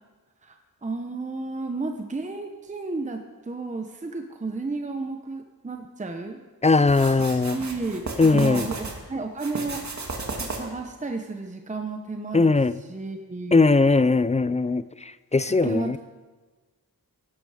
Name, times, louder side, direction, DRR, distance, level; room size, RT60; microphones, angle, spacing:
voice 1, 0.8-6.4 7.2-9.8 10.4-12.6 12.9-13.7 15.5-16.0, right 3 dB, 20° right, 4 dB, 0.9 m, -32 dB
voice 2, 6.6-7.6 8.2-8.7 12.3-12.7 13.5-14.8 15.3-16.0, left 3 dB, 20° left, 15 dB, 0.3 m, -19 dB
sound 1, 6.9-9.0 9.4-10.8, right 3 dB, 50° right, 2.2 m, -34 dB
17.0 x 12.0 x 4.9 m, 1.4 s
wide cardioid pair, 125°, 37 cm